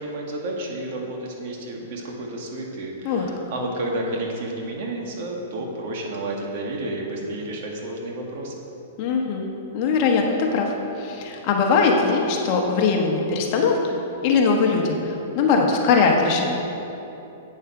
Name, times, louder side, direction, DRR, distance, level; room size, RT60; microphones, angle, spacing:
voice 1, 0.0-8.5, right 1 dB, 55° right, 0 dB, 1.8 m, -31 dB
voice 2, 9.0-16.5, left 4 dB, 40° left, 1 dB, 1.2 m, -21 dB
8.7 x 7.1 x 6.0 m, 2.9 s
hypercardioid pair, 150°, 0 cm